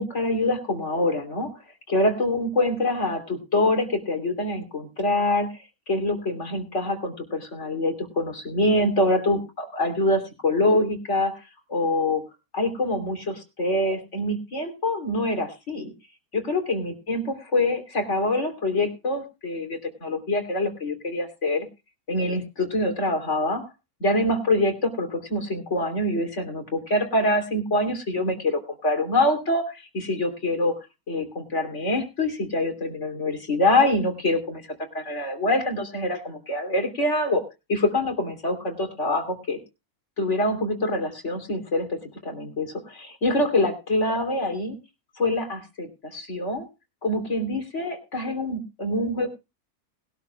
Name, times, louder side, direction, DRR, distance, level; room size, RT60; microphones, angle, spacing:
voice 1, 0.0-1.6 1.9-5.6 5.9-12.2 12.5-15.9 16.3-21.7 22.1-23.7 24.0-30.8 31.1-37.4 37.7-39.6 40.2-44.8 45.2-46.7 47.0-49.3, left 1 dB, 50° left, 5 dB, 3.6 m, -25 dB
21.0 x 12.5 x 2.3 m, 0.28 s
omnidirectional pair, 1.5 m